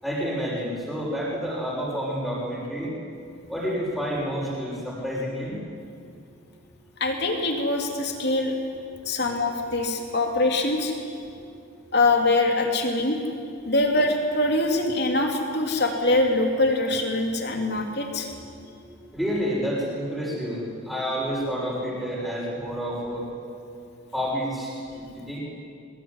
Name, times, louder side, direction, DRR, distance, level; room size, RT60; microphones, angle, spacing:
voice 1, 0.0-2.9 3.5-5.6 11.3-11.4 13.6-13.7 18.5-23.3 24.1-24.8 25.1-25.4, equal, ahead, -8 dB, 6.1 m, -29 dB
voice 2, 7.0-8.5 9.1-10.9 11.9-13.2 13.6-18.3, left 2 dB, 50° left, 2 dB, 3.5 m, -23 dB
23.0 x 20.5 x 9.9 m, 2.5 s
head